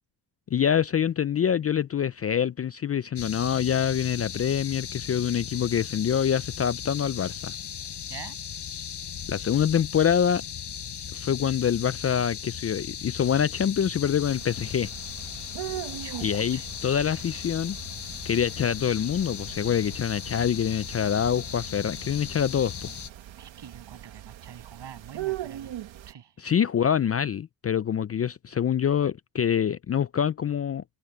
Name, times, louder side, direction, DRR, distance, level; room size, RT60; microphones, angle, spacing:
voice 1, 0.5-7.5 9.3-10.4 11.1-14.9 16.2-17.8 18.2-22.9 26.4-30.8, left 8 dB, 35° left, 0.4 m, -25 dB
sound 1, 3.2-23.1, left 8 dB, 60° left, 7.3 m, -37 dB
sound 2, 14.2-26.1, right 13 dB, 75° right, 1.9 m, -41 dB
voice 2, 16.0-16.7 23.4-25.7 26.1-26.3, right 9 dB, 60° right, 7.7 m, -45 dB
cardioid pair, 90°, 46 cm